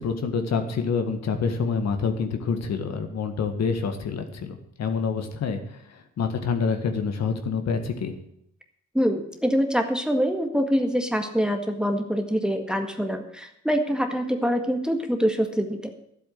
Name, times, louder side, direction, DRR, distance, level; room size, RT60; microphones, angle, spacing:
voice 1, 0.0-5.6 6.2-8.2, left 5 dB, 60° left, 7 dB, 1.9 m, -27 dB
voice 2, 9.0-15.9, equal, 5° right, 5 dB, 1.8 m, -25 dB
12.0 x 8.3 x 7.8 m, 0.74 s
cardioid pair, 90°, 30 cm